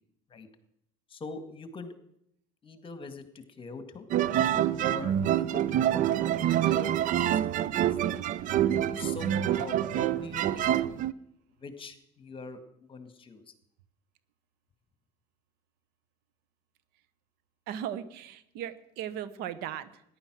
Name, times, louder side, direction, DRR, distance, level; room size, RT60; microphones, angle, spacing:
voice 1, 1.1-1.9 2.6-4.1 4.8-5.7 6.4-6.9 7.2-8.2 9.0-10.7 11.6-12.6 12.9-13.5, left 3 dB, 30° left, 10 dB, 1.9 m, -43 dB
sound 1, 4.1-11.1, right 11 dB, 50° right, 0.6 m, -26 dB
voice 2, 17.7-20.0, right 10 dB, 75° right, 14 dB, 1.0 m, -37 dB
14.0 x 10.5 x 6.2 m, 0.75 s
supercardioid pair, 95°, 17 cm